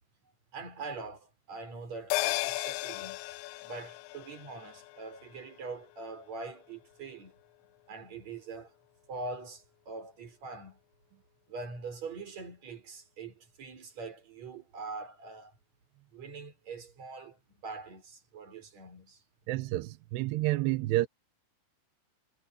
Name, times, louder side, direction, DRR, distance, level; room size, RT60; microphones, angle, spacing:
voice 1, 0.5-3.2 3.6-7.4 7.9-8.7 9.1-10.8 11.5-15.5 16.1-19.2, right 3 dB, 35° right, 5.5 m, -43 dB
sound 1, 2.1-6.8 7.1-7.2, left 22 dB, 85° left, 2.9 m, -36 dB
voice 2, 19.5-21.1, right 17 dB, 90° right, 2.3 m, -29 dB
omnidirectional pair, 5.9 m